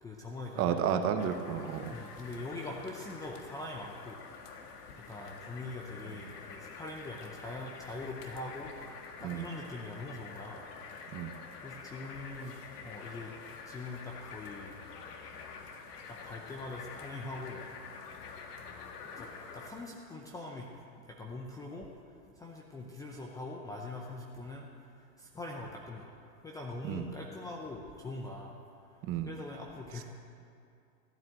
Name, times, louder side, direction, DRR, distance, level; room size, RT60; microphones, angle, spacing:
voice 1, 0.0-1.1 1.9-4.2 5.1-8.7 9.2-10.7 11.6-13.3 13.7-14.7 16.1-17.6 19.2-21.9 22.3-24.7 25.2-26.1 26.4-28.5 29.3-30.0, left 2 dB, 5° left, -1 dB, 0.5 m, -43 dB
voice 2, 0.6-1.9 6.1-6.3 9.2-9.5 11.1-11.3 26.8-27.0 29.0-29.3, right 8 dB, 25° right, 7 dB, 0.9 m, -32 dB
sound 1, 1.2-19.7, left 5 dB, 70° left, 1.8 m, -47 dB
15.0 x 9.1 x 7.8 m, 2.5 s
hypercardioid pair, 135°, 49 cm